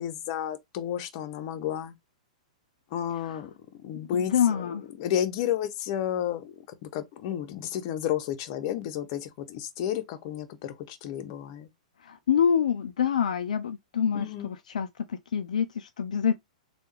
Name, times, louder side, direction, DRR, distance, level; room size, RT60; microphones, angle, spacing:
voice 1, 0.0-1.9 2.9-4.7 5.0-6.5 6.8-11.7 14.1-14.5, left 10 dB, 50° left, 0.8 m, -32 dB
voice 2, 3.9-4.8 12.0-16.4, left 8 dB, 80° left, 0.4 m, -26 dB
3.5 x 2.4 x 3.2 m
hypercardioid pair, 120°, 4 cm